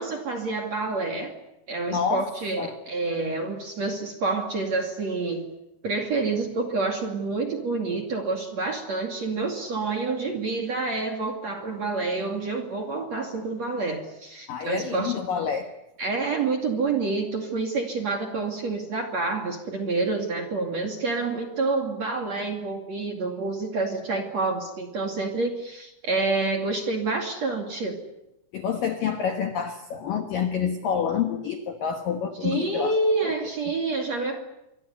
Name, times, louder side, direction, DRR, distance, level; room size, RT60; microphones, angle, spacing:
voice 1, 0.0-1.4 1.7-5.5 5.8-15.2 16.0-28.0 32.4-34.4, right 3 dB, 45° right, 3 dB, 2.8 m, -28 dB
voice 2, 1.9-2.3 2.6-2.7 14.5-15.7 28.5-32.9 33.2-33.5, left 7 dB, 65° left, 6 dB, 2.2 m, -28 dB
27.0 x 24.5 x 8.2 m, 0.88 s
omnidirectional pair, 5.9 m